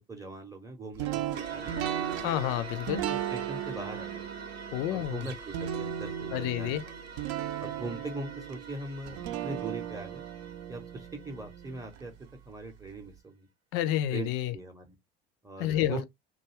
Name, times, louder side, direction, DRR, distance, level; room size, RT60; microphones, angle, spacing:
voice 1, 0.0-2.3 3.0-4.2 4.9-6.9 7.6-9.2 9.4-10.2 10.7-13.5 14.1-14.9 15.4-16.0, right 2 dB, 10° right, 0.7 m, -41 dB
sound 1, 1.0-12.0, right 10 dB, 55° right, 0.6 m, -36 dB
sound 2, 1.3-12.0, right 4 dB, 85° right, 0.8 m, -45 dB
voice 2, 2.2-3.0 4.7-5.2 6.3-6.8 13.7-14.5 15.6-16.1, left 13 dB, 50° left, 0.4 m, -29 dB
2.5 x 2.3 x 3.0 m
figure-of-eight pair, 65°, 30 cm